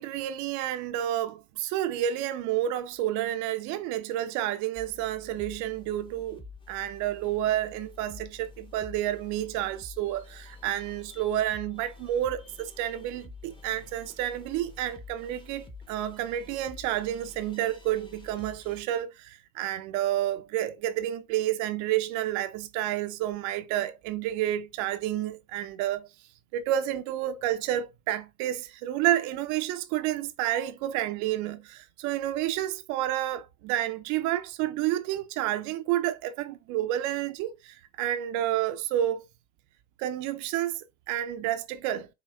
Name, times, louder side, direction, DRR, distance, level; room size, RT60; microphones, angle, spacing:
voice 1, 0.0-6.4 6.7-26.1 26.5-39.2 40.0-42.1, right 12 dB, 45° right, 0.6 m, -30 dB
sound 1, 4.8-18.8, left 3 dB, 10° left, 0.9 m, -49 dB
5.6 x 2.3 x 3.3 m
hypercardioid pair, 80°, 43 cm